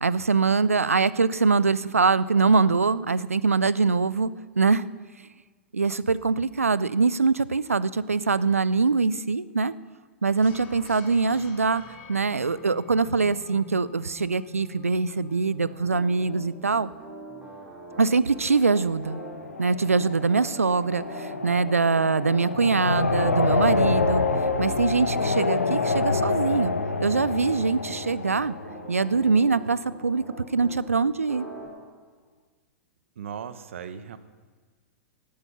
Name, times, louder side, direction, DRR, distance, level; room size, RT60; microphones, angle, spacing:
voice 1, 0.0-4.3 4.6-4.8 5.7-9.7 10.2-11.8 12.1-16.9 18.0-19.2 19.6-24.2 24.6-26.7 27.0-28.5 28.9-30.2 30.5-31.5, right 4 dB, 85° right, 18 dB, 0.4 m, -23 dB
sound 1, 10.4-17.4, left 4 dB, 50° left, 2.6 m, -47 dB
Piano, 15.6-30.8 31.3-31.7, right 2 dB, 15° right, 4.6 m, -43 dB
sound 2, 18.6-29.4, left 3 dB, 85° left, 1.0 m, -27 dB
voice 2, 33.2-34.2, right 7 dB, 65° right, 12 dB, 0.9 m, -37 dB
17.5 x 8.6 x 5.5 m, 1.5 s
figure-of-eight pair, 100°, 7 cm